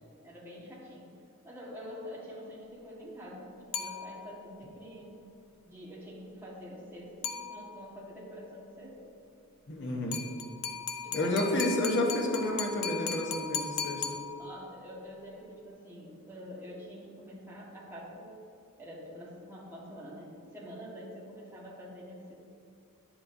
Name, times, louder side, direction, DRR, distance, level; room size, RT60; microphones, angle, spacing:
voice 1, 0.2-1.2 1.4-5.2 5.6-9.1 11.0-11.8 14.4-18.3 18.8-22.3, equal, 10° right, -6 dB, 1.5 m, -46 dB
sound 1, 3.7-4.5 7.2-8.0 10.1-14.8, left 7 dB, 80° left, 0.6 m, -37 dB
voice 2, 9.7-10.2 11.1-14.2, left 1 dB, 55° left, 0 dB, 0.9 m, -30 dB
10.0 x 7.4 x 2.6 m, 2.5 s
head